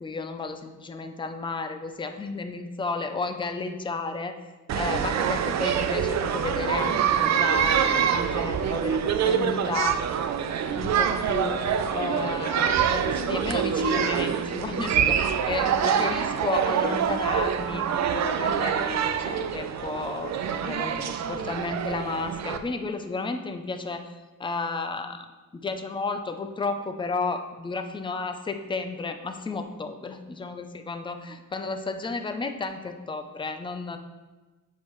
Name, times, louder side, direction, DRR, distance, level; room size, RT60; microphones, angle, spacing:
voice 1, 0.0-4.3 4.7-10.0 10.8-17.8 18.1-24.1 24.4-25.3 25.5-34.0, left 3 dB, 15° left, 7 dB, 0.5 m, -32 dB
sound 1, 4.7-22.6, right 8 dB, 55° right, 0.5 m, -25 dB
7.5 x 6.3 x 3.1 m, 1.2 s
cardioid pair, 140°, 33 cm